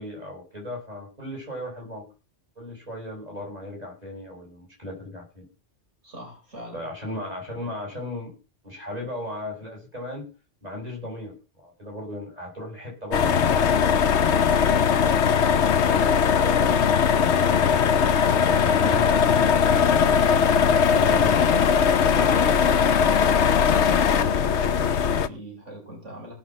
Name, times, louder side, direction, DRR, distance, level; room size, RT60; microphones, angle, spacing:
voice 1, 0.0-2.1 2.5-5.5 6.7-8.4 8.6-10.3 10.6-14.3 15.7-19.5 20.8-21.7 22.0-22.9, left 1 dB, 35° right, 0 dB, 6.9 m, -36 dB
voice 2, 6.0-6.8 14.8-15.5 22.2-22.3 24.1-26.3, right 1 dB, 80° right, 1 dB, 5.2 m, -42 dB
sound 1, 13.1-25.3, left 7 dB, 70° left, 1.1 m, -20 dB
17.5 x 6.2 x 7.4 m, 0.33 s
omnidirectional pair, 1.2 m